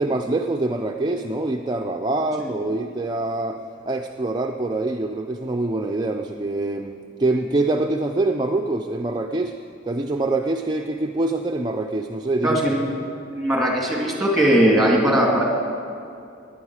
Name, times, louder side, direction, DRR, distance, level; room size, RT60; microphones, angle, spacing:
voice 1, 0.0-3.6 3.9-9.5 9.8-12.6, right 2 dB, 20° right, 3 dB, 0.4 m, -25 dB
voice 2, 12.4-12.8 13.3-15.4, right 1 dB, ahead, -2 dB, 2.5 m, -19 dB
17.0 x 11.0 x 4.8 m, 2.5 s
head